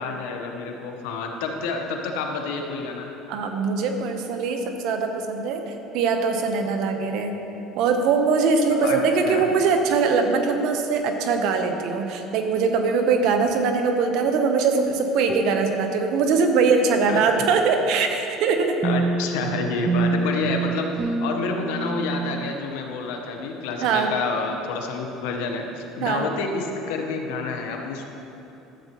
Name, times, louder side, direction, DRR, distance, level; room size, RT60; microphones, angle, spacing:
voice 1, 0.0-3.1 8.7-9.0 9.2-9.4 17.1-17.2 18.8-28.0, left 4 dB, 85° left, 3 dB, 1.0 m, -29 dB
voice 2, 3.3-7.4 7.8-18.8 23.8-24.1 26.0-26.3, right 4 dB, 70° right, 5 dB, 0.9 m, -22 dB
sound 1, 13.5-13.7 15.3-16.4 18.8-22.5, right 4 dB, 25° right, 0.4 m, -27 dB
13.0 x 8.0 x 3.0 m, 3.0 s
supercardioid pair, 110°, 0 cm